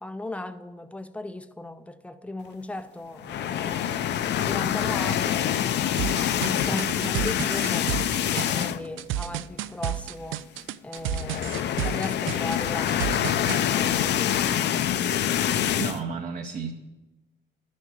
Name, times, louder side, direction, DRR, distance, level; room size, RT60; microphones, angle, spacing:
voice 1, 0.0-4.1 4.4-10.5 10.8-15.0, left 2 dB, 5° left, 0.4 m, -37 dB
sound 1, 3.2-9.0 9.4-9.5 9.8-9.9 11.0-16.0, left 10 dB, 60° left, 0.5 m, -26 dB
sound 2, 6.0-13.6, right 13 dB, 80° right, 0.4 m, -31 dB
voice 2, 6.7-7.1 15.7-16.7, right 6 dB, 35° right, 0.7 m, -33 dB
12.0 x 6.4 x 7.4 m
cardioid pair, 165°, 20 cm